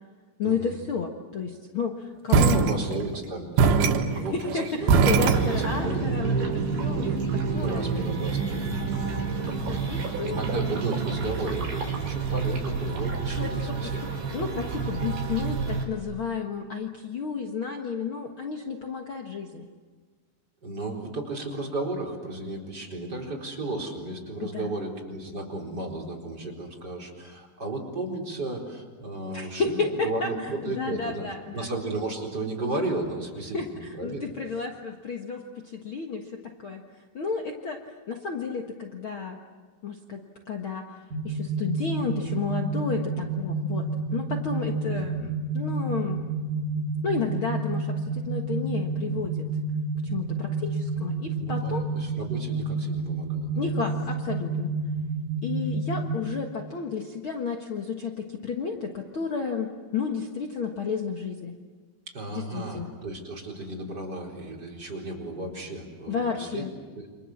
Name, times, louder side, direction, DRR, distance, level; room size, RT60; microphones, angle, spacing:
voice 1, 0.4-2.7 4.1-7.8 9.1-10.4 13.3-13.9 14.3-19.7 24.4-24.7 29.3-30.3 30.6-31.7 33.5-36.8 37.1-37.8 38.1-39.4 39.8-40.2 40.5-40.8 41.2-46.2 47.0-49.4 50.0-51.9 53.5-54.7 55.4-61.5 62.3-62.9 66.1-66.7, left 5 dB, 75° left, 2 dB, 1.2 m, -32 dB
sound 1, 2.3-3.2 3.6-5.9, right 5 dB, 85° right, 3.9 m, -21 dB
voice 2, 2.4-5.2 5.5-6.1 7.4-9.2 10.2-14.2 20.6-31.2 31.5-34.3 44.8-45.1 51.4-53.6 62.1-66.6 66.9-67.1, right 2 dB, 25° right, -1 dB, 4.3 m, -34 dB
sound 2, 5.0-15.8, right 4 dB, 65° right, 6.7 m, -29 dB
sound 3, 41.1-56.1, right 3 dB, 45° right, 5.8 m, -30 dB
29.5 x 26.0 x 7.3 m, 1.5 s
omnidirectional pair, 5.0 m